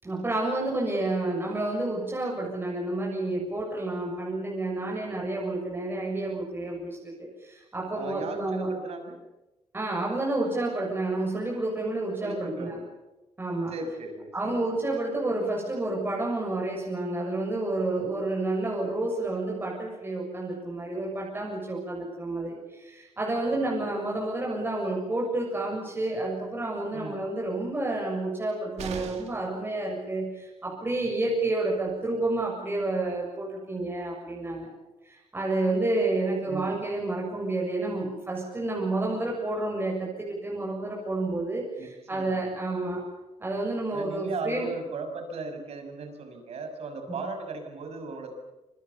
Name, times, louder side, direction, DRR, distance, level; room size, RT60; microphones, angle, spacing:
voice 1, 0.0-7.1 7.4-8.7 9.7-12.8 13.4-13.7 14.3-34.7 35.0-43.1 43.4-44.7, right 2 dB, 20° right, -2 dB, 7.3 m, -30 dB
voice 2, 7.9-9.2 12.2-12.9 13.7-14.6 23.4-23.9 26.9-27.2 36.5-36.8 41.8-42.6 43.9-48.3, right 3 dB, 70° right, 6 dB, 6.5 m, -37 dB
sound 1, 28.8-29.5 31.5-31.6 31.9-32.0, right 7 dB, 90° right, 3.1 m, -39 dB
26.5 x 26.0 x 7.1 m, 1.0 s
cardioid pair, 120°, 11 cm